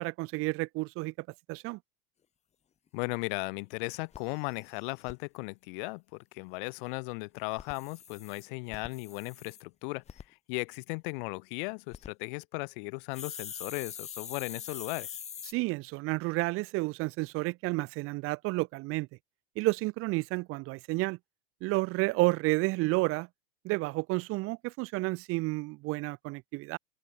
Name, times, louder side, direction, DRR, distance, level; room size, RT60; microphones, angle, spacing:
voice 1, 0.0-1.8 15.5-19.1 19.6-21.2 21.6-23.3 23.6-26.8, right 23 dB, 45° right, 0.6 m, -31 dB
voice 2, 2.9-15.1, left 32 dB, 55° left, 0.4 m, -37 dB
sound 1, 3.0-3.1 3.5-3.6 3.8-3.9 4.1-5.1 7.4-9.6 10.1-10.2 11.7-12.1 13.1-15.5, left 8 dB, 20° left, 0.8 m, -44 dB
open air
hypercardioid pair, 110°, 31 cm